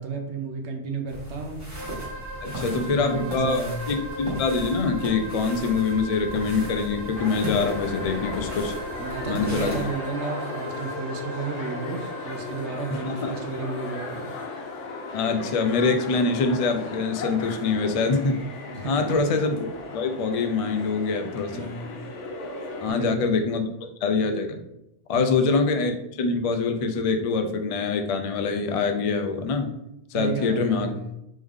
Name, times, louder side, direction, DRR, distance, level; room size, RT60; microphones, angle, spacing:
voice 1, 0.0-1.6 2.4-3.9 9.0-14.3 18.7-19.3 21.5-22.0 22.9-23.3 25.1-25.3 30.1-31.2, right 4 dB, 75° right, 3 dB, 0.9 m, -33 dB
sound 1, 1.1-9.9, equal, 15° right, 1.4 m, -37 dB
sound 2, 1.7-15.3, right 1 dB, 55° right, 1.6 m, -39 dB
voice 2, 2.4-8.7 9.3-9.8 12.9-13.3 15.1-18.4 18.8-19.6 19.9-21.7 22.8-24.6 25.1-29.7 30.1-30.9, left 4 dB, 65° left, 6 dB, 0.3 m, -25 dB
sound 3, 7.1-22.9, left 3 dB, 85° left, 1.0 m, -36 dB
3.5 x 3.1 x 3.5 m, 0.84 s
omnidirectional pair, 1.2 m